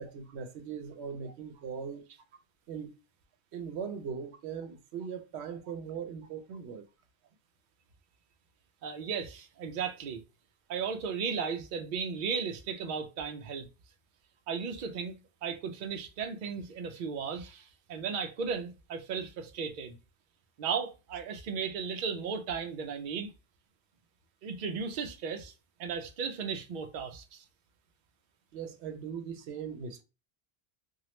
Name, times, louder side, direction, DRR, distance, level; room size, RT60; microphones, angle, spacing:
voice 1, 0.0-2.0 2.7-2.9 3.5-6.9 28.5-30.0, right 6 dB, 85° right, 0.9 m, -40 dB
voice 2, 8.8-10.2 10.7-13.7 14.5-15.2 15.4-20.0 20.6-23.3 24.4-25.5 25.8-27.4, right 6 dB, 60° right, 0.6 m, -35 dB
2.9 x 2.3 x 3.1 m
omnidirectional pair, 1.1 m